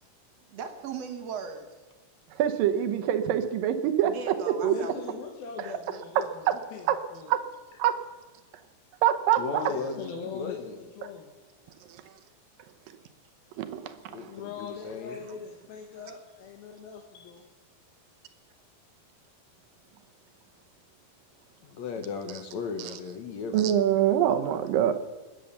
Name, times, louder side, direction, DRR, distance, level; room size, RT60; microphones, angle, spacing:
voice 1, 0.5-1.8 4.0-5.1, right 6 dB, 60° right, 6 dB, 1.9 m, -38 dB
voice 2, 2.4-4.1 4.5-4.8 5.6-5.7 6.5-6.6 6.9-7.0 7.3-7.4 7.8-7.9 9.0-9.6 13.6-14.3 23.5-24.9, right 11 dB, 75° right, 9 dB, 2.6 m, -24 dB
voice 3, 4.6-6.9 7.1-7.3 9.7-11.3 14.3-17.4, left 6 dB, 80° left, 1 dB, 3.1 m, -41 dB
voice 4, 9.4-10.8 14.1-15.2 17.1-17.3 21.6-23.8, left 5 dB, 65° left, 6 dB, 2.1 m, -36 dB
21.0 x 9.2 x 6.8 m, 1.2 s
omnidirectional pair, 4.2 m